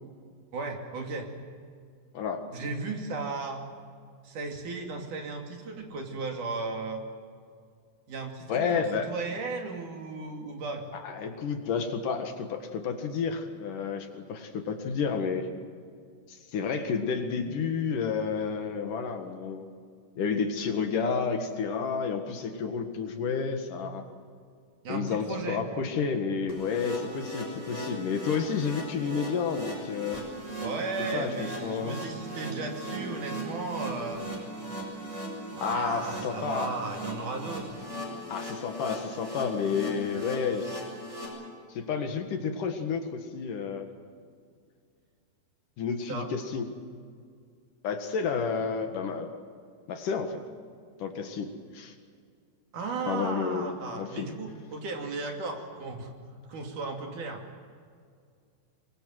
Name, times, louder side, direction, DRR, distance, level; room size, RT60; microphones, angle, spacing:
voice 1, 0.5-1.3 2.5-3.7 4.2-7.0 8.1-10.8 24.8-25.8 30.6-34.3 35.5-37.7 46.1-46.3 52.7-56.1 56.5-57.4, right 3 dB, 60° right, 3 dB, 4.0 m, -35 dB
voice 2, 2.1-2.4 8.5-9.1 10.9-15.5 16.3-19.7 20.2-24.0 24.9-30.2 31.1-32.0 35.6-36.7 38.3-40.8 41.7-43.9 45.8-46.7 47.8-49.3 49.9-50.4 51.0-51.9 53.1-54.3, left 5 dB, 65° left, 6 dB, 3.1 m, -30 dB
sound 1, 26.5-41.3, right 1 dB, 20° right, 6.5 m, -38 dB
25.0 x 22.0 x 7.6 m, 2.2 s
omnidirectional pair, 4.2 m